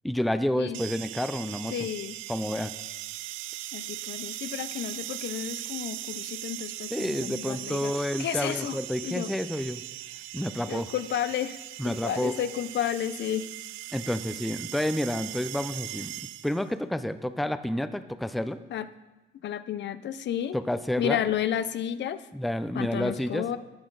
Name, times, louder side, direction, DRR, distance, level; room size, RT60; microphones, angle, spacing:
voice 1, 0.0-1.7 2.3-2.7 6.9-9.8 10.3-10.9 11.8-12.3 13.9-18.6 20.5-21.2 22.3-23.5, left 1 dB, ahead, 11 dB, 0.5 m, -29 dB
sound 1, 0.7-16.7, right 15 dB, 85° right, 0.4 m, -39 dB
voice 2, 1.7-2.2 3.7-8.8 9.0-9.3 10.7-11.6 11.8-13.5 18.7-18.9 19.4-20.6 21.0-22.2 22.7-23.6, left 10 dB, 65° left, 13 dB, 0.6 m, -31 dB
14.0 x 8.8 x 3.9 m, 1.1 s
cardioid pair, 90°, 20 cm